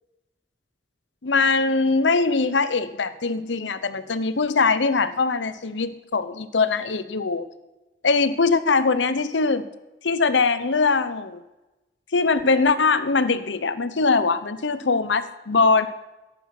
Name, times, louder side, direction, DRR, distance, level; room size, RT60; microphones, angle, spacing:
voice 1, 1.2-7.5 8.0-9.6 10.0-11.4 12.1-15.9, left 4 dB, 85° left, 14 dB, 0.9 m, -22 dB
13.5 x 11.0 x 6.0 m, 1.0 s
head